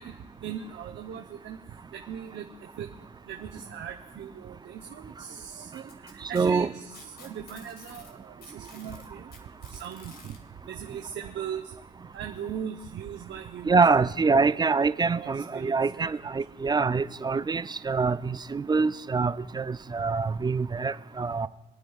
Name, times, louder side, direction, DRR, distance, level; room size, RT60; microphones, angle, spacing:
voice 1, 0.0-1.6 1.9-2.9 3.3-9.3 9.6-10.4 10.7-11.7 12.1-13.8 15.1-16.1, right 8 dB, 70° right, 3 dB, 0.8 m, -39 dB
Packing tape duct tape, 5.7-8.1 8.4-10.4 11.5-11.6 12.1-12.2 13.1-13.2, left 3 dB, 50° left, 2.4 m, -51 dB
voice 2, 6.3-6.7 13.7-21.5, right 4 dB, 20° right, 15 dB, 0.3 m, -25 dB
27.5 x 9.1 x 2.4 m, 1.0 s
cardioid pair, 90°, 20 cm